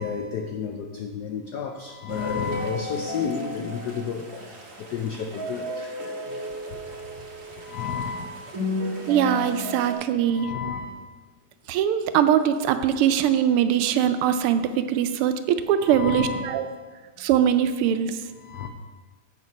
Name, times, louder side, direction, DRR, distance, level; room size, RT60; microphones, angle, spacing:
voice 1, 0.0-5.9 7.6-8.4 10.3-11.0 15.8-16.6 18.4-18.7, left 6 dB, 85° left, 4 dB, 0.9 m, -32 dB
sound 1, 2.1-9.9, left 1 dB, 50° right, 1.8 m, -33 dB
voice 2, 9.1-10.5 11.7-16.7 17.2-18.2, right 9 dB, 85° right, 10 dB, 1.5 m, -22 dB
7.7 x 6.6 x 5.2 m, 1.4 s
omnidirectional pair, 2.4 m